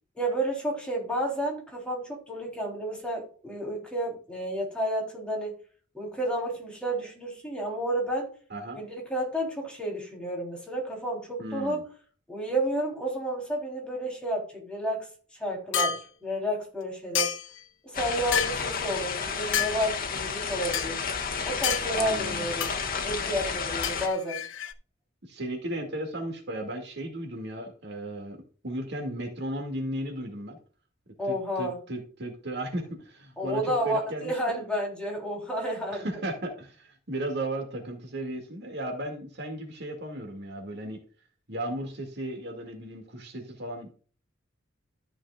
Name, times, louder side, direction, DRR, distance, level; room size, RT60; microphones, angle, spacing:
voice 1, 0.2-5.6 5.9-8.3 8.8-11.9 12.3-15.1 15.4-17.3 17.8-21.0 21.4-22.7 23.0-24.4 31.2-31.8 33.4-36.1, right 1 dB, 5° left, -2 dB, 3.5 m, -31 dB
voice 2, 11.4-11.8 22.0-22.4 25.2-30.6 31.2-34.7 35.9-41.0 41.5-43.9, right 1 dB, 60° right, 2 dB, 2.3 m, -35 dB
sound 1, 15.7-16.0 17.1-17.6 18.3-18.6 19.5-19.8 20.7-20.9 21.6-21.8 22.6-22.8 23.8-24.7, left 8 dB, 75° left, 0.9 m, -28 dB
sound 2, 17.9-24.1, left 5 dB, 50° left, 1.5 m, -31 dB
13.5 x 6.3 x 2.4 m, 0.41 s
head